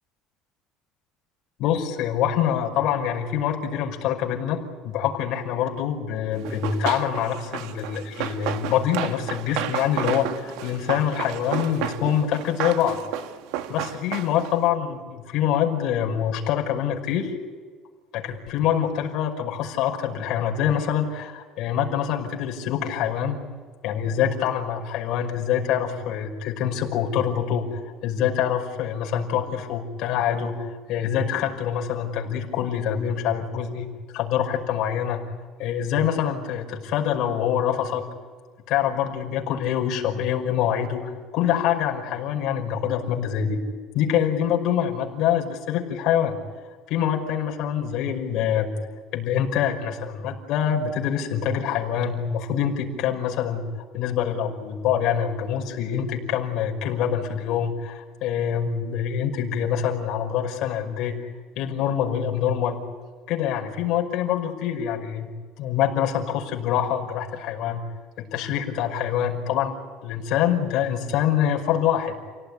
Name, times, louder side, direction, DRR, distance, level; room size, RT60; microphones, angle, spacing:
voice 1, 1.6-4.6 4.8-13.0 13.7-17.3 18.1-23.4 23.8-33.9 34.1-35.2 35.6-38.1 38.7-43.6 43.9-46.4 46.9-48.7 49.1-53.6 53.9-61.2 61.6-62.8 63.3-65.3 65.6-67.8 68.2-69.7 70.0-72.1, left 9 dB, 55° left, 1 dB, 5.6 m, -25 dB
Run, 6.4-14.6, right 11 dB, 85° right, 1.5 m, -32 dB
29.5 x 18.0 x 9.9 m, 1.5 s
cardioid pair, 155°, 0 cm